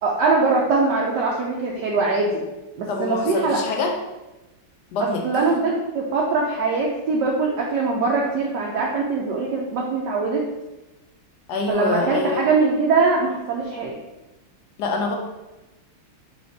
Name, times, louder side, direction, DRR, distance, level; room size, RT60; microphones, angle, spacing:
voice 1, 0.0-2.4 2.8-3.6 5.0-10.4 11.7-14.0, right 4 dB, 70° right, -2 dB, 1.0 m, -22 dB
voice 2, 2.9-4.0 4.9-5.4 11.5-12.5 14.8-15.2, left 3 dB, 70° left, 1 dB, 1.0 m, -25 dB
4.2 x 3.2 x 3.9 m, 1.0 s
omnidirectional pair, 2.3 m